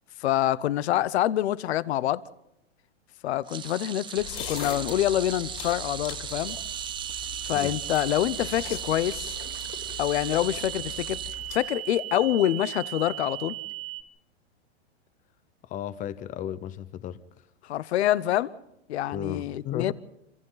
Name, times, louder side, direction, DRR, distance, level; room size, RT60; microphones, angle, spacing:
voice 1, 0.2-2.2 3.2-6.5 7.4-9.3 10.0-11.2 11.5-13.6 17.6-18.5 18.9-19.9, left 13 dB, 75° left, 0.9 m, -26 dB
sound 1, 3.5-11.9 12.3-12.5 13.7-13.8, right 8 dB, 15° right, 0.7 m, -38 dB
sound 2, 4.2-11.6, left 9 dB, 55° left, 5.7 m, -41 dB
sound 3, 6.4-14.0, right 17 dB, 30° right, 1.3 m, -38 dB
voice 2, 15.6-17.2 19.1-19.9, left 10 dB, 25° left, 0.8 m, -34 dB
26.5 x 26.5 x 4.0 m
hypercardioid pair, 140°, 33 cm